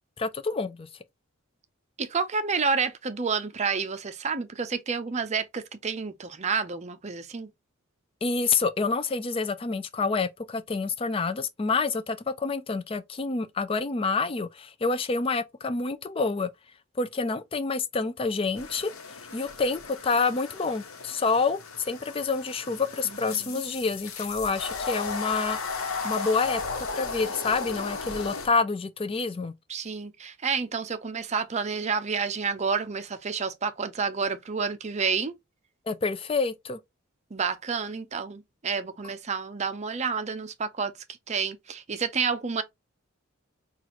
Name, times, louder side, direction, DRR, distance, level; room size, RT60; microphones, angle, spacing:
voice 1, 0.2-0.9 8.2-16.5 17.0-18.9 19.3-29.5 35.9-36.8, left 4 dB, 25° left, 0.4 m, -28 dB
voice 2, 2.0-7.5 23.3-23.6 29.7-35.3 37.3-40.9 41.3-42.6, right 5 dB, 30° right, 0.5 m, -29 dB
sound 1, 18.6-28.5, left 4 dB, 75° left, 1.1 m, -35 dB
5.9 x 2.4 x 2.9 m
head